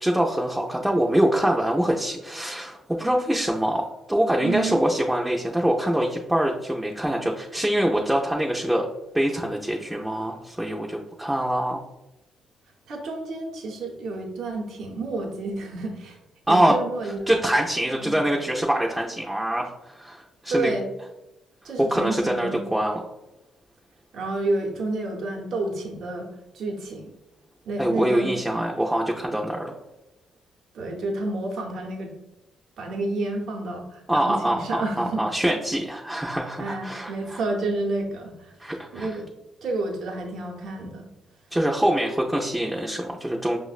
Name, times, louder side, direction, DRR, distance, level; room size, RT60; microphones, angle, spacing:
voice 1, 0.0-8.9 9.1-11.8 16.5-16.8 17.0-20.7 21.8-23.0 27.8-29.7 34.1-37.4 38.6-39.1 41.5-43.6, right 1 dB, 5° right, -1 dB, 0.4 m, -24 dB
voice 2, 4.4-4.8 12.9-16.2 16.5-17.4 18.0-18.2 20.5-20.8 21.6-22.6 24.1-26.3 26.5-27.1 27.7-28.3 30.7-32.1 32.8-35.2 36.6-39.3 39.6-41.1, right 2 dB, 70° right, 1 dB, 0.6 m, -30 dB
5.4 x 2.0 x 2.4 m, 0.93 s
cardioid pair, 90°, 0 cm